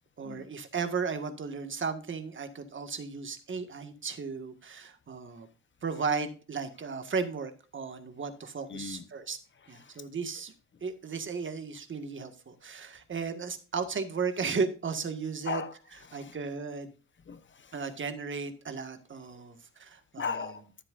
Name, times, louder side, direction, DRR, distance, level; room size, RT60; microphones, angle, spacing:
voice 1, 0.2-5.5 5.8-9.4 9.7-10.5 10.8-15.6 16.1-16.9 17.7-20.3, right 5 dB, 40° right, 1.8 m, -35 dB
voice 2, 8.7-9.1 9.6-10.0 15.4-16.4 17.3-17.9 20.2-20.7, left 5 dB, 40° left, 1.1 m, -38 dB
13.5 x 7.6 x 2.6 m
cardioid pair, 90°, 30 cm